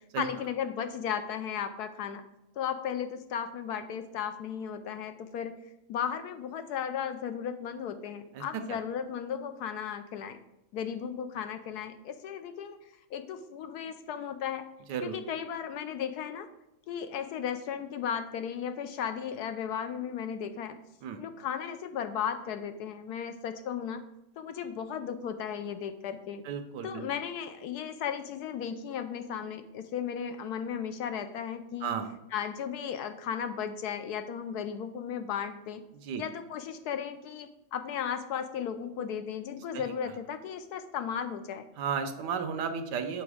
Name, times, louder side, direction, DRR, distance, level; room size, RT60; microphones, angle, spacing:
voice 1, 0.2-2.2 2.6-5.5 5.9-10.4 10.7-12.8 13.1-14.6 15.0-16.5 16.9-20.8 21.2-24.0 24.4-26.4 26.8-32.0 32.3-35.8 36.2-41.6, left 8 dB, 75° left, 9 dB, 1.0 m, -35 dB
voice 2, 8.3-8.8 14.9-15.2 21.0-21.2 26.4-27.1 31.8-32.1 36.0-36.2 39.7-39.8 41.8-43.2, right 6 dB, 80° right, 8 dB, 1.3 m, -33 dB
7.0 x 4.8 x 4.9 m, 0.88 s
omnidirectional pair, 1.8 m